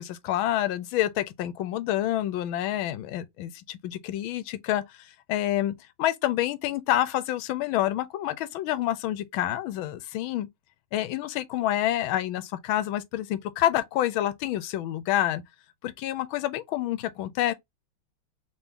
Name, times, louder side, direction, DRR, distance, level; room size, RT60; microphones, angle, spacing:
voice 1, 0.0-4.8 5.3-10.5 10.9-15.4 15.8-17.5, left 13 dB, 80° left, 1.4 m, -28 dB
3.8 x 3.5 x 2.8 m
omnidirectional pair, 2.2 m